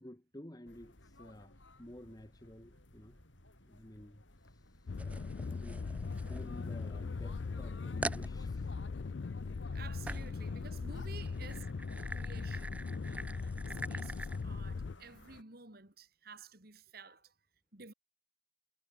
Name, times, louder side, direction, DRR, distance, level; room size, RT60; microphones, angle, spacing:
voice 1, 0.0-3.2 3.6-5.1 5.4-6.0 6.3-8.8 10.8-11.1 17.0-17.2, left 1 dB, 20° left, 1.6 m, -53 dB
sound 1, 0.7-15.4, left 2 dB, 85° left, 4.4 m, -57 dB
sound 2, 4.9-15.0, left 4 dB, 70° left, 0.5 m, -39 dB
sound 3, 5.0-7.0 7.5-7.6 8.0-8.3 10.1-10.4 11.2-14.4, right 2 dB, 5° right, 0.3 m, -44 dB
voice 2, 9.5-11.7 12.0-17.3 17.7-17.9, right 4 dB, 55° right, 2.7 m, -53 dB
head